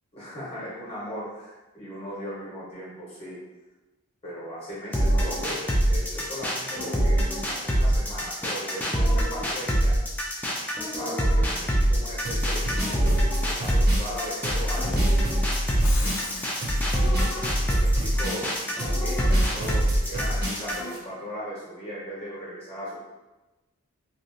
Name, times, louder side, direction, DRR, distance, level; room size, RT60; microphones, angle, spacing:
voice 1, 0.1-3.4 4.2-10.0 10.9-15.3 15.8-16.2 17.0-23.0, equal, 25° left, -7 dB, 1.0 m, -38 dB
sound 1, 4.9-20.9, right 1 dB, 5° left, 0.3 m, -24 dB
sound 2, 12.2-21.0, equal, 45° right, 0.8 m, -28 dB
Shatter, 15.6-16.7, left 3 dB, 65° left, 0.5 m, -36 dB
3.1 x 2.5 x 2.5 m, 1.1 s
head